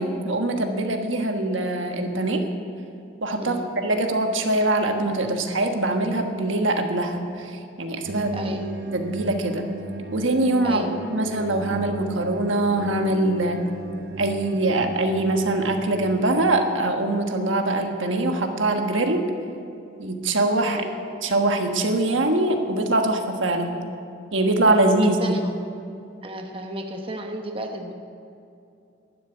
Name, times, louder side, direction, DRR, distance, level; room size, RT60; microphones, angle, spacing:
voice 1, 0.0-2.4 3.2-8.4 8.9-9.7 10.1-13.6 14.2-19.3 20.0-20.9 21.2-23.8 24.3-25.4, right 2 dB, 90° right, 4 dB, 1.4 m, -23 dB
voice 2, 3.4-3.7 8.3-8.7 10.6-11.0 20.7-21.0 25.0-25.4 26.2-27.9, right 1 dB, 30° right, 3 dB, 1.0 m, -33 dB
sound 1, 8.1-16.3, right 1 dB, 60° right, 1.0 m, -36 dB
12.0 x 10.5 x 9.5 m, 2.6 s
head